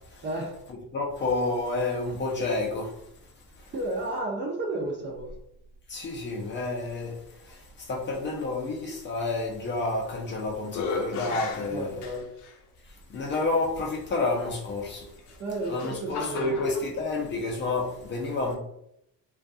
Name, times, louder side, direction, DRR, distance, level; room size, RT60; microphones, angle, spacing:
voice 1, 0.2-0.6 3.7-5.3 11.7-12.3 15.4-16.6, right 2 dB, 30° right, 0 dB, 0.5 m, -32 dB
voice 2, 0.9-2.9 5.9-7.1 7.4-12.0 13.1-15.1 15.7-18.6, left 3 dB, 30° left, -1 dB, 0.5 m, -29 dB
sound 1, 9.9-10.3 10.7-12.5 13.3-13.4 15.2-16.9, left 4 dB, 85° left, 0.6 m, -35 dB
2.3 x 2.2 x 2.6 m, 0.77 s
cardioid pair, 120°, 37 cm